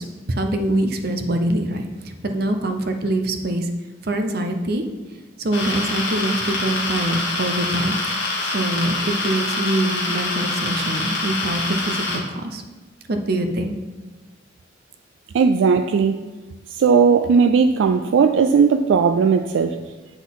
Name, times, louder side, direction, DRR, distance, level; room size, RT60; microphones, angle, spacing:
voice 1, 0.0-3.7 4.0-4.8 5.4-12.6 13.1-13.8, right 1 dB, 55° right, 6 dB, 0.7 m, -24 dB
sound 1, 5.5-12.2, left 2 dB, 75° left, 1.5 m, -25 dB
voice 2, 15.3-16.2 16.7-19.8, right 5 dB, 75° right, 8 dB, 0.3 m, -17 dB
9.3 x 3.9 x 4.0 m, 1.2 s
head